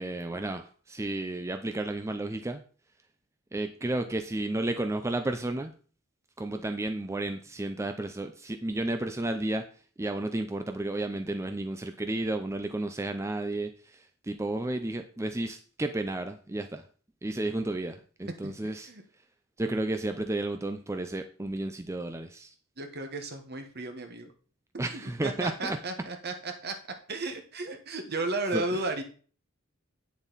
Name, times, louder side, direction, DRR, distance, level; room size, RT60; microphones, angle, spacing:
voice 1, 0.0-2.6 3.5-5.7 6.4-9.7 10.0-16.8 17.2-18.9 19.6-22.5 24.8-25.8 28.5-28.9, right 2 dB, 15° right, 7 dB, 0.5 m, -32 dB
voice 2, 18.4-19.0 22.8-24.3 24.9-26.7 27.1-29.0, right 2 dB, 55° right, 6 dB, 1.4 m, -34 dB
9.1 x 7.2 x 4.0 m, 0.41 s
head